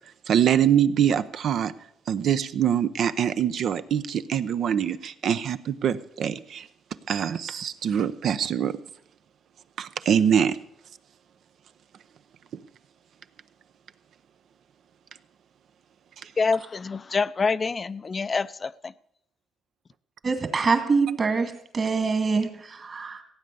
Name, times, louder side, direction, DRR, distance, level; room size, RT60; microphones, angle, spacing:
voice 1, 0.3-1.7 2.1-6.7 7.1-8.7 9.8-10.6 12.5-12.6, right 9 dB, 65° right, 13 dB, 0.7 m, -24 dB
voice 2, 16.4-18.9, left 4 dB, 35° left, 16 dB, 0.5 m, -26 dB
voice 3, 20.2-23.2, right 4 dB, 40° right, 7 dB, 2.2 m, -25 dB
16.0 x 8.7 x 6.8 m, 0.71 s
cardioid pair, 90°, 0 cm